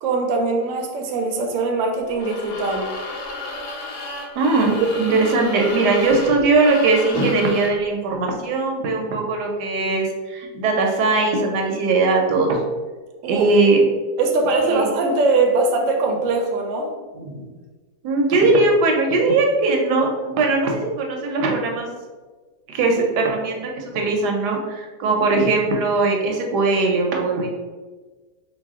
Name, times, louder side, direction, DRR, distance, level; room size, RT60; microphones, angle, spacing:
voice 1, 0.0-2.9 13.2-13.5 14.2-16.9, right 3 dB, 65° right, 3 dB, 0.8 m, -21 dB
sound 1, 2.1-7.8, left 2 dB, 80° left, 1.1 m, -33 dB
voice 2, 4.4-12.6 13.3-13.8 14.7-14.8 17.2-17.4 18.0-21.9 22.7-27.5, right 3 dB, 85° right, 2 dB, 1.2 m, -20 dB
4.0 x 2.2 x 3.5 m, 1.3 s
omnidirectional pair, 1.7 m